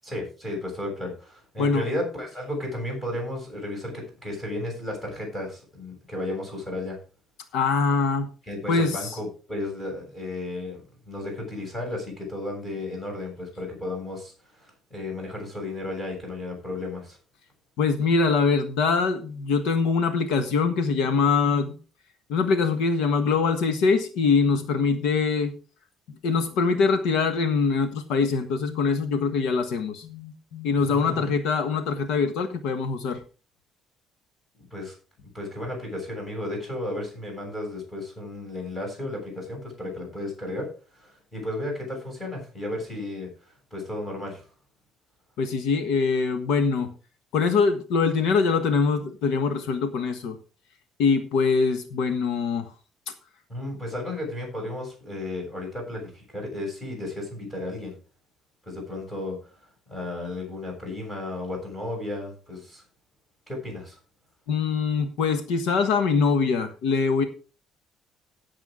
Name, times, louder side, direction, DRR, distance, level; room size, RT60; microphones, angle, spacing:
voice 1, 0.0-7.0 8.5-17.2 30.8-31.3 34.6-34.9 35.3-40.7 40.9-44.5 53.5-58.0 58.6-59.4 59.9-62.8 63.5-64.0, left 1 dB, 10° left, -1 dB, 7.3 m, -34 dB
voice 2, 7.5-8.3 8.7-9.2 17.8-21.8 22.3-25.5 26.2-33.2 45.4-46.9 47.3-50.4 51.0-52.7 64.5-67.2, left 5 dB, 80° left, 8 dB, 1.4 m, -23 dB
17.0 x 7.3 x 3.8 m, 0.36 s
cardioid pair, 180°, 0 cm